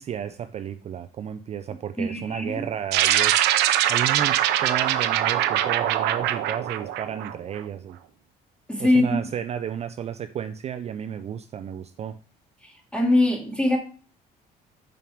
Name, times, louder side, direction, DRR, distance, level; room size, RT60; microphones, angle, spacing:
voice 1, 0.0-8.0 8.8-12.2, right 9 dB, 40° right, 10 dB, 0.4 m, -33 dB
voice 2, 2.0-2.7 8.7-9.1 12.6-13.8, left 2 dB, 5° left, 0 dB, 2.0 m, -22 dB
sound 1, 2.9-7.6, right 12 dB, 90° right, 0.6 m, -22 dB
5.8 x 5.1 x 4.7 m, 0.42 s
cardioid pair, 110°, 17 cm